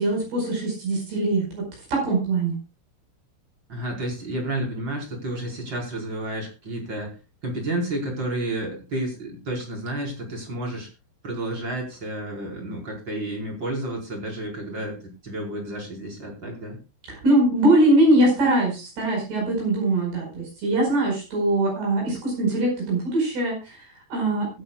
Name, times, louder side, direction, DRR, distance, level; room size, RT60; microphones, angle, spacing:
voice 1, 0.0-2.6 17.1-24.5, right 1 dB, 60° right, -1 dB, 6.8 m, -22 dB
voice 2, 3.7-7.2 7.4-10.9 11.2-16.8, right 1 dB, 25° right, 0 dB, 4.8 m, -31 dB
22.5 x 9.4 x 2.3 m, 0.29 s
omnidirectional pair, 5.2 m